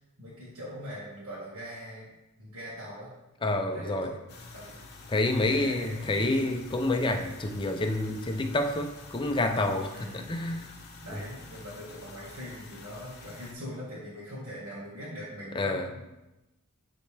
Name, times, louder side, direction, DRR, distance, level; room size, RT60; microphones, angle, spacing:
voice 1, 0.2-2.1 2.4-3.1 3.7-4.1 4.5-4.8 5.5-6.5 9.9-10.5 11.0-16.0, equal, 70° right, -9 dB, 1.7 m, -42 dB
voice 2, 3.4-4.1 5.1-10.7 11.1-11.2 15.5-16.0, left 2 dB, 20° left, 4 dB, 0.5 m, -28 dB
sound 1, 4.3-13.5, left 3 dB, 45° left, 0.9 m, -48 dB
9.9 x 3.4 x 3.3 m, 1.0 s
head